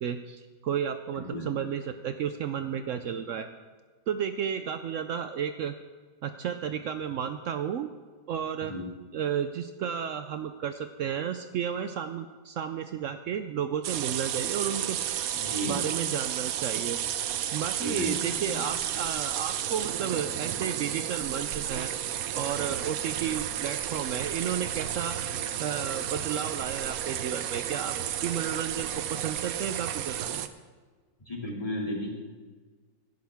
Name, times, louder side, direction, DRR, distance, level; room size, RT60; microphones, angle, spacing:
voice 1, 0.0-3.5 4.1-5.7 6.2-7.9 8.3-8.7 9.1-15.3 15.6-17.0 17.5-21.9 22.3-25.2 25.6-30.3, right 8 dB, 85° right, 9 dB, 0.7 m, -32 dB
sound 1, 13.8-30.5, right 10 dB, 65° right, 1.0 m, -32 dB
voice 2, 15.4-15.8 17.8-18.6 31.3-32.1, equal, 20° left, -2 dB, 2.5 m, -33 dB
17.5 x 11.5 x 3.5 m, 1.5 s
omnidirectional pair, 1.9 m